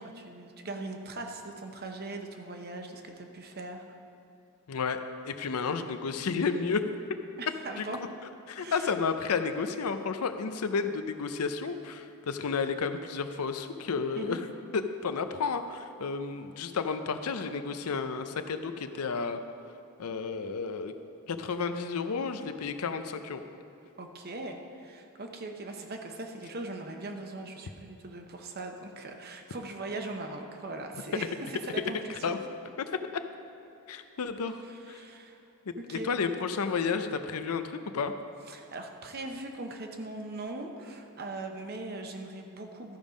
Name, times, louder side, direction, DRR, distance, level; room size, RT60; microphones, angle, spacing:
voice 1, 0.0-3.8 7.4-8.0 8.6-8.9 14.2-14.4 24.0-31.3 31.6-32.4 34.9-35.4 35.8-36.1 38.5-43.0, right 2 dB, 45° right, 4 dB, 0.8 m, -40 dB
voice 2, 4.7-6.8 7.8-7.9 8.5-14.4 14.7-19.4 20.0-20.9 21.3-23.4 32.2-32.4 32.8-33.0 33.9-35.0 35.7-38.1, left 5 dB, 85° left, 9 dB, 0.6 m, -32 dB
13.0 x 5.4 x 5.1 m, 2.8 s
head